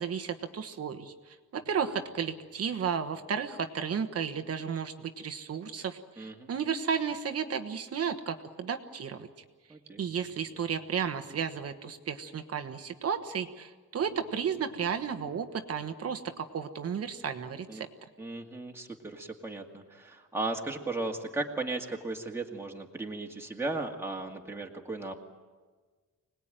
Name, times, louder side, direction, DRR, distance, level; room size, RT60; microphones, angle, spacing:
voice 1, 0.0-9.3 10.0-17.9, right 7 dB, 45° right, 7 dB, 1.3 m, -33 dB
voice 2, 6.2-6.5 9.7-10.0 17.7-17.8 18.2-25.1, right 2 dB, 5° right, 0 dB, 2.1 m, -36 dB
25.5 x 19.5 x 9.1 m, 1.4 s
wide cardioid pair, 170°, 32 cm